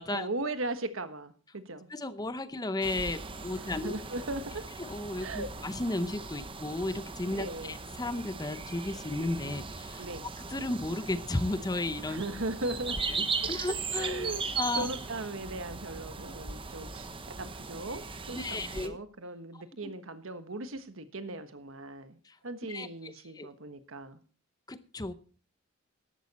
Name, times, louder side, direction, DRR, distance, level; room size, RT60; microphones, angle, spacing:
voice 1, 0.1-1.9 3.6-4.6 5.2-5.5 7.3-7.8 10.0-10.3 12.1-13.0 14.0-14.4 14.7-17.1 17.4-18.0 18.3-22.2 22.4-24.2, right 2 dB, 70° right, 10 dB, 1.3 m, -38 dB
voice 2, 1.9-3.9 4.8-10.1 10.4-12.2 13.0-14.3 14.6-14.9 18.3-19.0 19.8-19.9 22.2-22.4 22.7-23.5 24.7-25.1, left 2 dB, 20° left, 13 dB, 0.7 m, -34 dB
Nõmme Morning June, 2.8-18.9, right 4 dB, 25° right, 1.0 m, -38 dB
13.5 x 11.5 x 4.2 m, 0.41 s
head